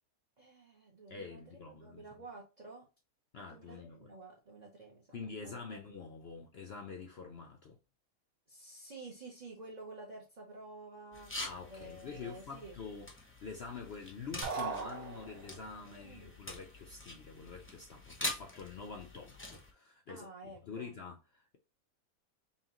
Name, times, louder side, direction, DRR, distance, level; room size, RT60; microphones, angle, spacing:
voice 1, 0.4-2.9 3.4-5.1 5.4-5.6 8.5-11.3 11.7-12.8 15.9-16.3 20.1-20.9, right 3 dB, 35° right, 0.7 m, -51 dB
voice 2, 1.1-2.2 3.3-4.1 5.1-7.8 11.4-13.1 13.4-21.6, left 5 dB, 75° left, 0.5 m, -46 dB
sound 1, 11.1-19.7, left 1 dB, 15° left, 0.4 m, -45 dB
sound 2, 14.4-15.7, right 4 dB, 65° right, 1.4 m, -38 dB
5.7 x 2.4 x 2.9 m
omnidirectional pair, 1.7 m